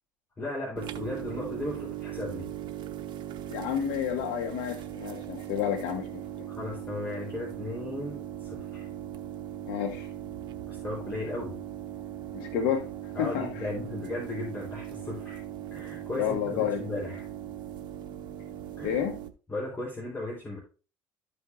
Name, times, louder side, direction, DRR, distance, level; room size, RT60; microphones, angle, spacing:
voice 1, 0.4-2.5 6.6-8.9 10.7-11.6 13.1-15.4 15.7-17.3 18.8-19.0 19.5-20.6, left 2 dB, 20° left, -4 dB, 3.7 m, -36 dB
sound 1, 0.8-19.3, right 11 dB, 55° right, 1.0 m, -39 dB
voice 2, 3.5-6.5 9.7-10.1 12.3-13.7 16.1-16.8 18.8-19.2, left 8 dB, 85° left, 4 dB, 1.0 m, -30 dB
14.0 x 5.2 x 2.5 m, 0.35 s
supercardioid pair, 105°, 9 cm